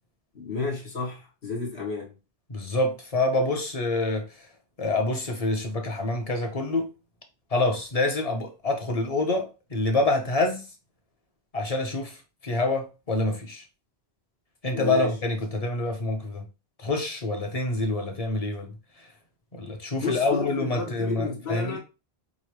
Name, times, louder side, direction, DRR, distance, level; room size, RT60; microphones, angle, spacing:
voice 1, 0.3-2.1 14.7-15.1 20.0-21.8, left 4 dB, 75° left, 1.8 m, -31 dB
voice 2, 2.5-4.3 4.8-6.9 7.5-10.6 11.5-12.2 12.4-13.6 14.6-16.4 16.8-18.7 19.5-21.8, left 2 dB, 35° left, 1.0 m, -26 dB
5.4 x 2.8 x 3.1 m
omnidirectional pair, 1.1 m